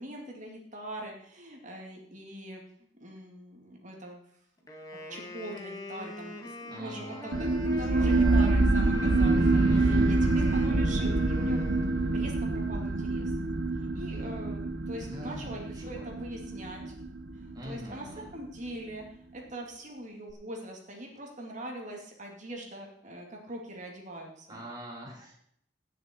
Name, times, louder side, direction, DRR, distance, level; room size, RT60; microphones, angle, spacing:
voice 1, 0.0-4.2 5.1-11.7 12.1-13.3 13.8-17.0 17.3-24.6, right 1 dB, 45° right, 0 dB, 2.5 m, -42 dB
Wind instrument woodwind instrument, 4.7-12.3, left 2 dB, 20° left, 1.9 m, -44 dB
voice 2, 6.7-7.4 7.7-8.5 9.3-10.1 15.0-16.1 17.5-18.3 24.5-25.3, equal, 20° right, -3 dB, 2.3 m, -44 dB
sound 1, 7.3-18.4, right 2 dB, 70° right, 0.9 m, -26 dB
17.0 x 6.7 x 4.6 m, 0.68 s
head